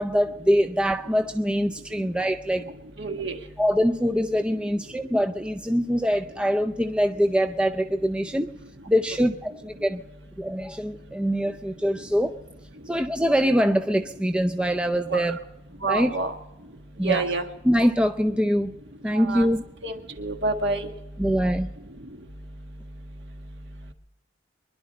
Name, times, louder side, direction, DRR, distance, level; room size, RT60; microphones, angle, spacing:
voice 1, 0.0-2.7 3.6-8.5 8.9-10.0 10.4-12.4 12.9-15.4 15.8-16.2 17.0-17.3 17.6-18.7 19.0-19.6 21.2-21.7, equal, 5° right, 0.5 m, -23 dB
voice 2, 3.0-3.4 15.1-15.2 15.8-16.3 17.0-17.4 19.1-19.5 19.8-20.9, right 3 dB, 60° right, 1.7 m, -27 dB
24.5 x 11.5 x 4.2 m
head